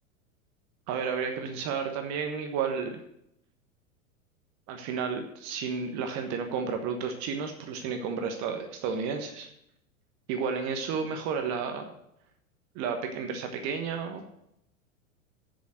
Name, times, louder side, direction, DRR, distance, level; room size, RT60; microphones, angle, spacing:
voice 1, 0.9-3.0 4.7-9.5 10.3-11.9 12.7-14.2, right 6 dB, 40° right, 5 dB, 1.3 m, -32 dB
7.6 x 6.9 x 7.8 m, 0.78 s
figure-of-eight pair, 95°, 41 cm